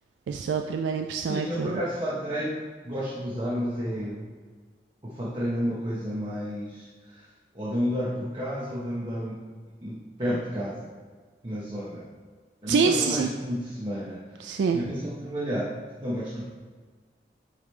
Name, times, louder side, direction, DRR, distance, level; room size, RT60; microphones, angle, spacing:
voice 1, 0.3-1.8 12.7-13.3 14.4-14.8, right 5 dB, 90° right, 4 dB, 0.3 m, -26 dB
voice 2, 1.3-4.3 5.0-7.2 7.5-9.4 9.8-10.9 11.4-12.0 12.6-14.5 14.7-15.7 16.0-16.4, equal, 25° right, -7 dB, 0.9 m, -31 dB
9.5 x 3.4 x 3.2 m, 1.5 s
head